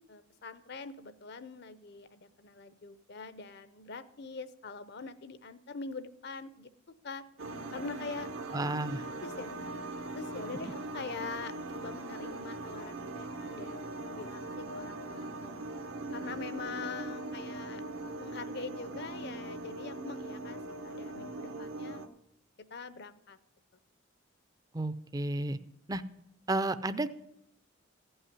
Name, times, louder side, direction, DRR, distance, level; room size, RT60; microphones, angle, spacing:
voice 1, 0.1-6.7 7.0-7.2 7.7-8.3 9.0-9.5 10.1-15.6 16.1-17.8 18.2-22.0 22.7-23.4, left 4 dB, 55° left, 13 dB, 0.7 m, -44 dB
sound 1, 7.4-22.1, right 2 dB, 80° right, 1.0 m, -40 dB
voice 2, 8.5-9.0 24.7-25.6 25.9-26.0 26.5-27.1, right 2 dB, 20° right, 13 dB, 0.5 m, -32 dB
15.5 x 5.6 x 9.8 m, 0.82 s
head